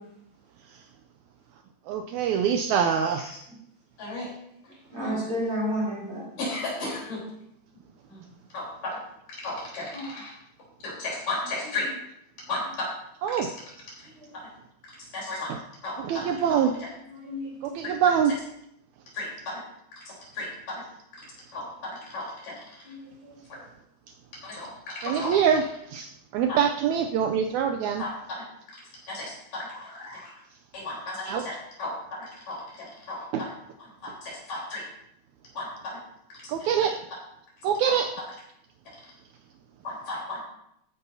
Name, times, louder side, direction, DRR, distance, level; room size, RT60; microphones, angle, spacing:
voice 1, 1.9-3.2 13.2-13.5 15.5-15.6 15.9-16.8 17.6-18.4 25.0-28.1 31.3-31.5 33.3-33.5 36.5-37.0 37.6-38.1, right 7 dB, 80° right, 6 dB, 1.8 m, -25 dB
voice 2, 2.9-3.3 4.0-4.3 4.6-5.2 6.4-7.2 8.1-8.2 8.5-8.7 8.9-9.0 9.3-10.3 10.8-11.9 12.5-12.6 15.1-15.5 15.8-16.6 17.8-17.9 19.1-19.6 20.3-20.5 21.5-22.6 24.4-25.3 28.0-28.1 29.1-30.3 30.7-31.9 32.2-33.2 34.0-34.8 35.6-35.7 36.8-36.9 37.9-38.0 39.8-40.4, left 2 dB, 80° left, -4 dB, 5.4 m, -34 dB
voice 3, 4.9-6.2 9.9-10.2 14.2-14.3 17.2-17.8 22.8-23.0 23.2-23.3, equal, 40° right, -5 dB, 4.8 m, -31 dB
14.5 x 9.8 x 2.7 m, 0.76 s
omnidirectional pair, 3.7 m